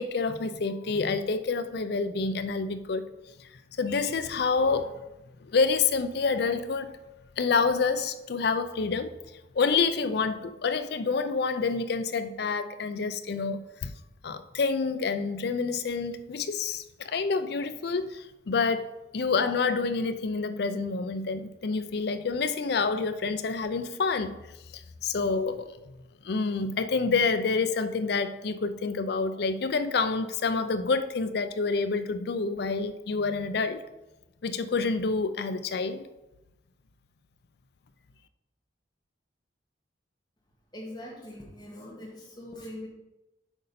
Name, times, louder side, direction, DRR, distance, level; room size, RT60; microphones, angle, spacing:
voice 1, 0.0-3.1 3.4-3.5 3.8-5.0 5.4-7.0 7.4-9.1 9.5-13.9 14.2-24.4 24.7-25.8 26.2-33.8 34.4-36.1, left 4 dB, 60° left, 0.5 m, -28 dB
voice 2, 40.7-42.9, left 1 dB, 25° left, 1.8 m, -42 dB
8.1 x 5.1 x 4.2 m
head